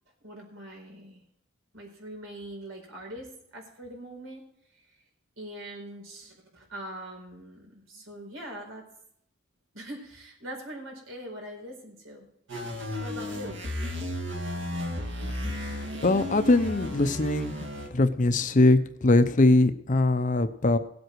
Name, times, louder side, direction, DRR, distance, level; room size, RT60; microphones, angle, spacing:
voice 1, 0.2-1.2 1.7-4.4 4.7-5.0 5.4-8.8 9.7-12.3 12.9-13.6, right 1 dB, 80° right, 1 dB, 4.7 m, -42 dB
sound 1, 12.5-17.9, left 1 dB, 60° right, 2.1 m, -34 dB
voice 2, 16.0-17.6 17.9-20.8, left 2 dB, 40° left, 10 dB, 0.7 m, -22 dB
17.5 x 8.0 x 4.6 m, 0.72 s
head